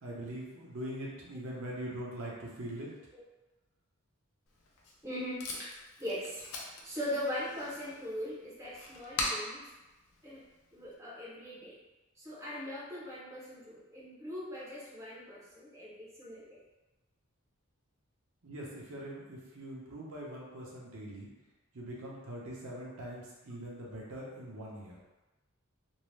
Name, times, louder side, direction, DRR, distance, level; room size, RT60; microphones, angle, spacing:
voice 1, 0.0-2.9 18.4-21.3 21.7-25.0, right 1 dB, 70° right, -4 dB, 0.7 m, -42 dB
Packing tape duct tape, 4.5-10.9, left 2 dB, 70° left, 0.5 m, -42 dB
voice 2, 5.0-6.4 6.8-9.6 10.2-10.4 10.7-11.8 12.2-16.6, left 1 dB, 15° right, -7 dB, 0.5 m, -40 dB
2.6 x 2.0 x 3.1 m, 1.1 s
head